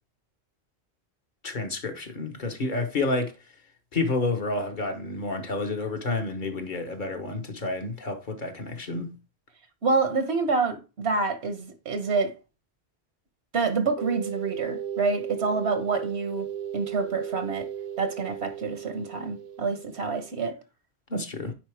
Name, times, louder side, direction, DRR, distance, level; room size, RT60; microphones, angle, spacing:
voice 1, 1.4-3.4 3.9-9.1 21.1-21.5, left 2 dB, 50° left, 1.2 m, -30 dB
voice 2, 9.8-12.3 13.5-16.5 16.7-17.7 18.0-20.6, right 4 dB, 80° right, 1.4 m, -27 dB
sound 1, 14.0-20.5, right 9 dB, 65° right, 0.7 m, -36 dB
9.4 x 4.2 x 3.4 m
omnidirectional pair, 1.1 m